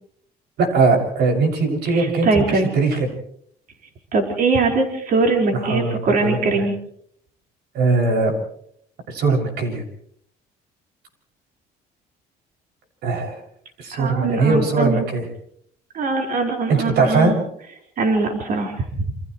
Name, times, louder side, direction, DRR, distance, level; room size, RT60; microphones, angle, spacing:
voice 1, 0.6-3.1 5.5-6.6 7.7-8.3 9.1-9.8 13.0-13.4 13.8-15.3 16.7-17.3, right 3 dB, 75° right, 3 dB, 6.8 m, -20 dB
voice 2, 1.9-2.7 4.1-6.7 13.9-15.0 15.9-17.3 18.0-19.0, right 3 dB, 55° right, 2 dB, 4.9 m, -21 dB
28.5 x 28.0 x 3.2 m, 0.66 s
cardioid pair, 110°, 17 cm